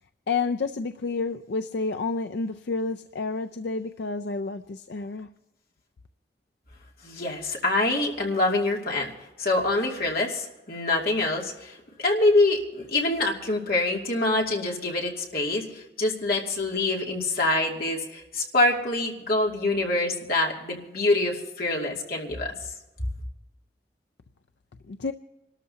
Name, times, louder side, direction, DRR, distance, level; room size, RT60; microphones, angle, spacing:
voice 1, 0.3-5.3 24.9-25.1, left 4 dB, 80° left, 8 dB, 0.5 m, -30 dB
voice 2, 7.0-9.1 9.4-11.7 12.0-15.7 16.0-22.5, left 2 dB, 55° left, -1 dB, 2.5 m, -25 dB
27.0 x 13.0 x 2.8 m, 0.98 s
head